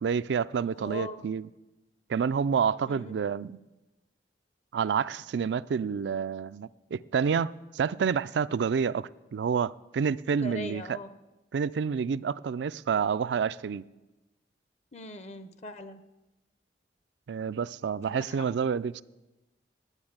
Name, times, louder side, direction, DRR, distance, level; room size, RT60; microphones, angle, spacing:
voice 1, 0.0-1.5 2.1-3.6 4.7-11.0 11.5-13.8 17.3-19.0, right 6 dB, 80° right, 0.4 m, -29 dB
voice 2, 0.7-1.2 2.9-3.1 10.4-11.1 14.9-16.0 18.0-18.5, left 2 dB, 40° left, 0.7 m, -41 dB
9.9 x 9.6 x 8.7 m
head